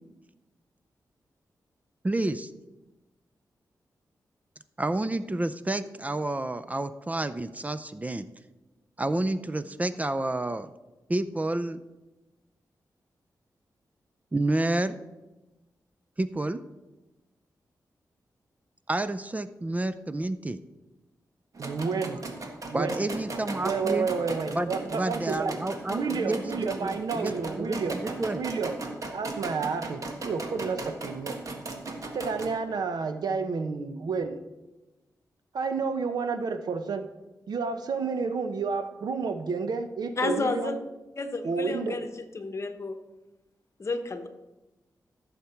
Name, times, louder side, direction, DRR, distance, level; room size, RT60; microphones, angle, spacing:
voice 1, 2.0-2.5 4.8-8.3 9.0-10.7 11.1-11.8 14.3-15.0 16.2-16.6 18.9-20.6 22.7-24.1 24.5-27.3 27.6-28.4, right 2 dB, 20° right, 12 dB, 0.5 m, -29 dB
sound 1, 21.5-32.5, right 2 dB, 55° right, 1.6 m, -37 dB
voice 2, 21.6-22.2 22.7-23.0 23.6-25.6 25.9-28.0 28.3-28.7 29.1-31.4 32.1-34.4 35.5-37.1 37.5-40.8 41.4-42.0, right 5 dB, 80° right, 8 dB, 0.9 m, -30 dB
voice 3, 40.2-40.8 41.2-42.1 42.3-43.0 43.8-44.3, left 3 dB, 45° left, 8 dB, 1.1 m, -30 dB
15.0 x 7.2 x 4.5 m, 1.1 s
wide cardioid pair, 85°, 7 cm